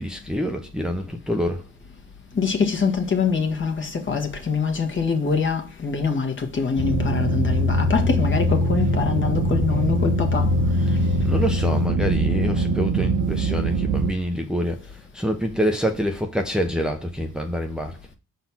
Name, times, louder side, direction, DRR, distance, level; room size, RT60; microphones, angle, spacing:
voice 1, 0.0-1.6 11.2-18.0, equal, ahead, 0.8 m, -26 dB
voice 2, 2.3-10.5 10.8-11.0, left 5 dB, 40° left, 1.6 m, -24 dB
sound 1, 6.8-14.1, right 1 dB, 80° right, 1.4 m, -22 dB
5.5 x 4.1 x 6.0 m
cardioid pair, 90°, 30 cm